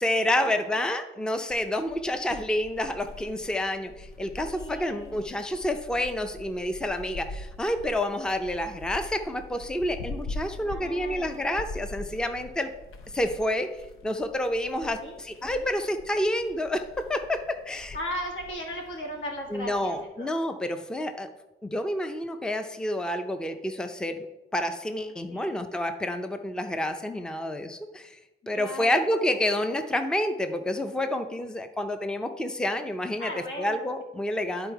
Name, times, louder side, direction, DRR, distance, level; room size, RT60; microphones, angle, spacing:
voice 1, 0.0-12.7 13.1-13.7 14.0-18.0 19.5-21.3 21.6-24.3 24.5-28.2 28.5-33.3 33.6-34.7, left 1 dB, 5° left, 8 dB, 0.4 m, -29 dB
sound 1, 1.5-20.0, left 2 dB, 85° left, 0.7 m, -43 dB
voice 2, 4.4-5.3 10.6-11.5 14.8-15.2 15.4-15.7 17.7-20.3 25.3-25.5 28.5-29.4 33.2-33.9, equal, 65° left, 0 dB, 2.0 m, -38 dB
11.0 x 3.9 x 4.6 m, 1.0 s
wide cardioid pair, 145°, 21 cm